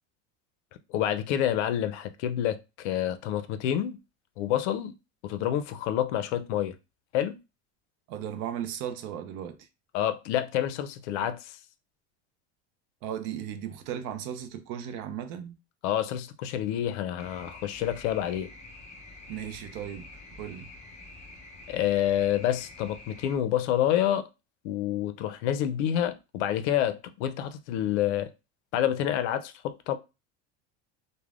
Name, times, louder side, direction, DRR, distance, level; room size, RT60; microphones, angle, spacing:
voice 1, 0.9-4.0 4.4-4.9 5.2-6.7 7.1-7.4 9.9-11.6 15.8-18.5 21.7-24.3 24.6-28.3 28.7-30.0, left 11 dB, 85° left, 0.5 m, -28 dB
voice 2, 8.1-9.7 13.0-15.6 19.3-20.1 20.4-20.7, right 9 dB, 50° right, 0.4 m, -36 dB
sound 1, 17.2-23.4, left 2 dB, 20° left, 0.5 m, -47 dB
3.2 x 2.1 x 2.4 m
cardioid pair, 155°, 34 cm